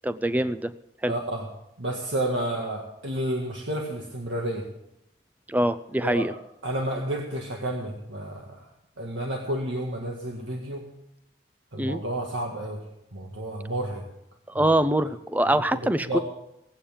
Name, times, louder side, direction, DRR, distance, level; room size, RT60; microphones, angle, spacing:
voice 1, 0.0-0.7 1.0-1.1 5.5-6.3 11.8-12.0 14.5-16.2, right 1 dB, 10° right, 13 dB, 0.5 m, -24 dB
voice 2, 1.1-1.5 1.8-4.7 6.0-6.4 6.6-8.7 9.0-10.8 11.7-12.8 13.1-14.0 14.5-14.7 15.5-16.2, right 1 dB, 85° right, 0 dB, 1.9 m, -31 dB
18.0 x 8.6 x 7.2 m, 0.84 s
head